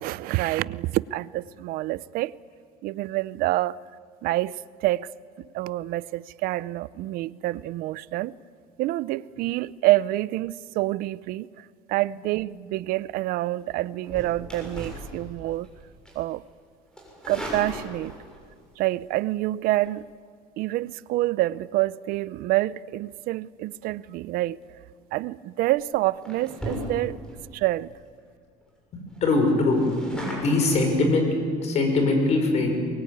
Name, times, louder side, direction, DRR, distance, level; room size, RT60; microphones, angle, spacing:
voice 1, 0.0-2.3 2.8-3.8 4.2-4.5 4.8-5.1 5.5-8.3 8.8-11.5 11.9-15.7 16.2-16.4 17.3-18.1 18.8-20.1 20.6-24.6 25.1-27.2 27.5-27.9, right 17 dB, 65° right, 0.6 m, -27 dB
sound 1, 14.0-15.7 16.1-16.3 16.9-18.4 19.6-19.9 24.9-25.2 25.7-25.8 26.2-27.3 27.8-27.9 28.2-28.3 28.6-28.7 29.1-30.8, equal, 5° left, 7.0 m, -37 dB
voice 2, 28.9-29.8 30.1-32.7, left 2 dB, 40° left, 5.8 m, -22 dB
23.0 x 22.5 x 9.4 m
cardioid pair, 160°, 16 cm